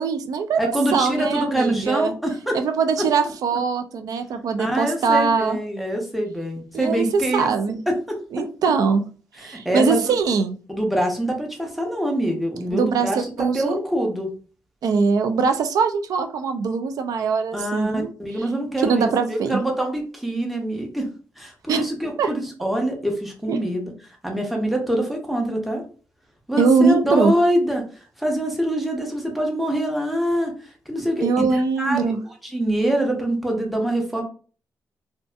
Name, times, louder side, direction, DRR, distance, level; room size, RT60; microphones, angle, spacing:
voice 1, 0.0-2.1 2.5-5.6 6.7-7.8 8.3-9.0 9.4-10.6 12.7-13.8 14.8-18.1 18.8-19.6 21.7-21.9 22.2-22.3 23.5-23.6 26.6-27.3 31.2-32.2, right 5 dB, 75° right, 7 dB, 0.3 m, -22 dB
voice 2, 0.6-2.6 4.6-8.2 9.4-10.1 10.7-14.3 17.5-21.1 21.4-23.9 24.2-25.8 26.5-27.8 28.2-30.5 30.9-32.0 32.5-34.2, right 1 dB, ahead, 1 dB, 0.6 m, -24 dB
2.6 x 2.4 x 2.2 m, 0.39 s
cardioid pair, 115°, 6 cm